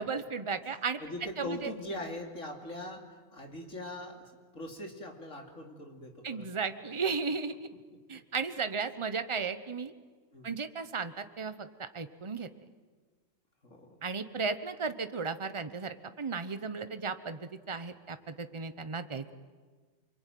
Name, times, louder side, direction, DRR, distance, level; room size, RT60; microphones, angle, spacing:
voice 1, 0.0-1.0 1.4-1.6 6.2-7.7 8.1-9.9 10.4-12.5 14.0-19.3, right 5 dB, 25° right, 10 dB, 1.1 m, -35 dB
voice 2, 1.0-6.5 10.3-10.5 13.6-14.0, left 1 dB, 75° left, 2 dB, 3.5 m, -41 dB
28.5 x 22.5 x 9.3 m, 1.5 s
omnidirectional pair, 1.3 m